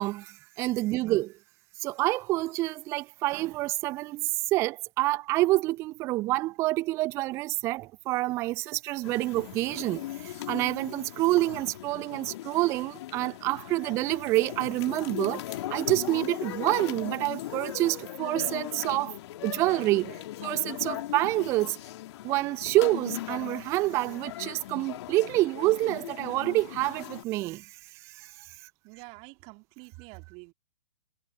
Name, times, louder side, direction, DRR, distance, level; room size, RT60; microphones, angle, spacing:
voice 1, 0.0-1.3 1.8-15.4 15.7-19.2 19.4-21.8 22.2-27.8 28.0-28.3, right 19 dB, 15° right, 0.4 m, -27 dB
sound 1, 9.0-27.2, left 14 dB, 45° left, 2.6 m, -39 dB
Wind instrument woodwind instrument, 16.1-20.3, left 6 dB, 70° left, 2.1 m, -59 dB
voice 2, 28.8-30.5, right 30 dB, 30° right, 3.1 m, -48 dB
figure-of-eight pair, 115°, 20 cm